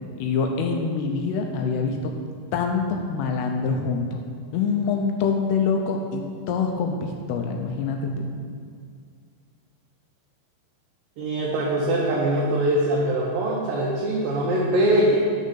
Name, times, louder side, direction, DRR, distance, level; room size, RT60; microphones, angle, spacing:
voice 1, 0.2-2.1 2.5-4.2 4.5-8.3, left 5 dB, 85° left, 3 dB, 2.6 m, -25 dB
voice 2, 11.2-15.2, right 1 dB, 80° right, -3 dB, 2.0 m, -22 dB
7.0 x 6.5 x 5.7 m, 2.1 s
omnidirectional pair, 5.0 m